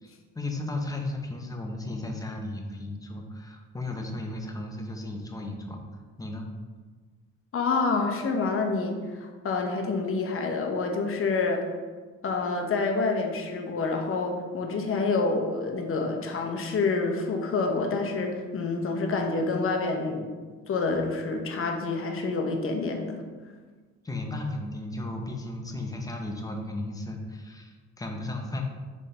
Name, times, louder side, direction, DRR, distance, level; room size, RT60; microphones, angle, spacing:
voice 1, 0.0-5.8 6.2-6.5 24.0-28.6, left 2 dB, 10° left, 2 dB, 0.6 m, -35 dB
voice 2, 7.5-11.6 12.2-20.3 20.7-23.2, left 3 dB, 45° left, 3 dB, 0.7 m, -27 dB
4.1 x 3.8 x 3.2 m, 1.4 s
cardioid pair, 90°, 30 cm